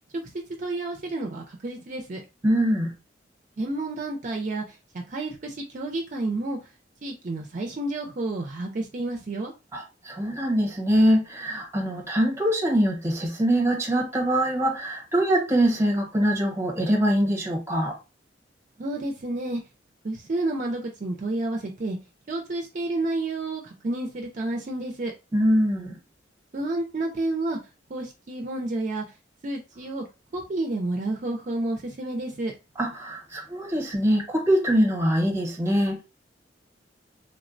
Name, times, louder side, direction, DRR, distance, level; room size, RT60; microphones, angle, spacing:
voice 1, 0.6-2.2 3.6-6.6 7.0-9.5 18.8-19.6 20.0-22.0 22.3-25.1 26.5-27.6 27.9-29.0 29.4-30.0 30.3-32.5, right 2 dB, 45° right, 0.5 m, -30 dB
voice 2, 2.4-2.9 9.7-17.9 25.3-26.0 32.8-36.0, equal, 15° right, 0.8 m, -23 dB
3.4 x 2.1 x 2.5 m
head